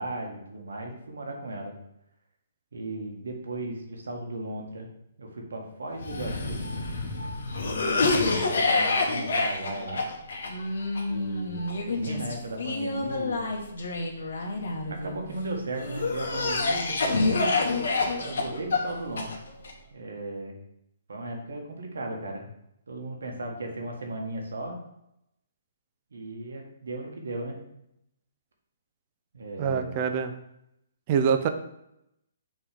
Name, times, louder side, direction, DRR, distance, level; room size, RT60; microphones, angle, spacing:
voice 1, 0.0-1.7 2.7-4.9 5.2-6.6 7.6-10.1 11.1-13.5 14.9-17.6 18.1-19.3 19.9-20.5 21.1-22.5 22.9-24.8 26.1-27.6 29.3-30.1, right 2 dB, 85° right, 1 dB, 1.5 m, -36 dB
Cough, 6.0-15.2 15.8-19.7, left 3 dB, 75° left, 1.3 m, -28 dB
voice 2, 29.6-30.3 31.1-31.5, right 7 dB, 30° right, 7 dB, 0.5 m, -24 dB
5.9 x 3.2 x 5.0 m, 0.80 s
hypercardioid pair, 160°, 0 cm